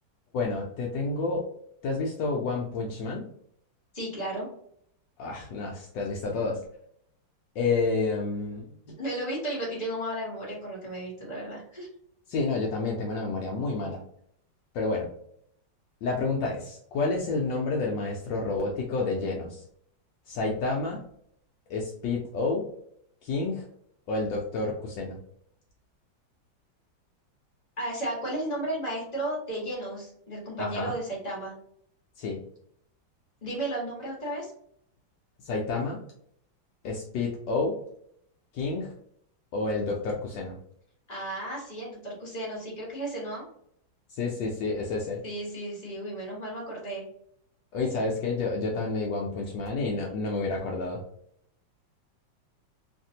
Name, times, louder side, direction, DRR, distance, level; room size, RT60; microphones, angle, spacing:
voice 1, 0.3-1.5 1.8-3.2 5.2-6.6 7.6-9.0 12.3-14.0 14.7-15.1 16.0-19.6 20.3-21.0 21.7-22.6 23.2-23.6 24.1-25.2 30.6-31.0 32.2-32.4 35.4-36.0 36.8-37.7 38.5-38.9 39.5-40.6 44.1-45.2 47.7-51.0, left 3 dB, 75° left, -1 dB, 1.2 m, -29 dB
voice 2, 3.9-4.5 9.0-11.9 27.8-31.5 33.4-34.5 41.1-43.4 45.2-47.0, right 1 dB, 25° left, -3 dB, 1.2 m, -34 dB
3.3 x 2.5 x 2.7 m, 0.68 s
omnidirectional pair, 2.1 m